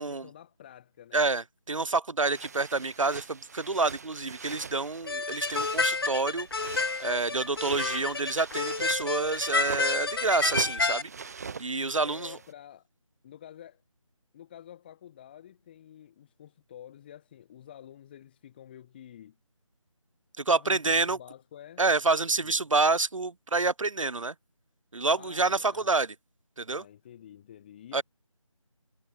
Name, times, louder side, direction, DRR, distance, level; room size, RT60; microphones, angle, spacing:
voice 1, 0.0-1.2 12.0-12.9 13.2-13.8 14.3-19.4 20.4-21.8 22.4-22.6 25.1-26.0 26.7-28.0, left 10 dB, 20° left, 3.8 m, -49 dB
voice 2, 1.1-12.4 20.4-21.2 21.8-24.3 24.9-26.1 26.6-26.8 27.9-28.0, right 3 dB, 70° right, 1.1 m, -28 dB
sound 1, 2.3-12.5, right 5 dB, 30° right, 1.8 m, -42 dB
sound 2, 5.1-11.0, left 4 dB, 45° left, 1.4 m, -30 dB
figure-of-eight pair, 165°, 17 cm